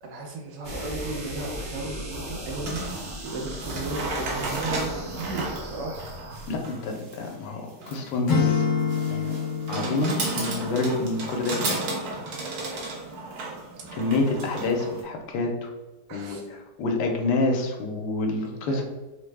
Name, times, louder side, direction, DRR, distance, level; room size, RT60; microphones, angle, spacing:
voice 1, 0.0-6.0 13.8-13.9 16.1-16.4 18.4-18.8, right 3 dB, 85° right, 0 dB, 1.3 m, -35 dB
sound 1, 0.6-6.5, equal, 40° right, 0.7 m, -37 dB
sound 2, 2.6-15.0, right 2 dB, 70° right, 1.2 m, -33 dB
voice 2, 6.5-8.7 9.1-9.4 9.7-11.8 13.9-15.7 16.1-18.8, left 3 dB, 80° left, 2 dB, 1.2 m, -28 dB
Acoustic guitar / Strum, 8.3-11.3, left 6 dB, 55° left, 1.0 m, -27 dB
3.4 x 2.1 x 3.2 m, 1.1 s
omnidirectional pair, 1.8 m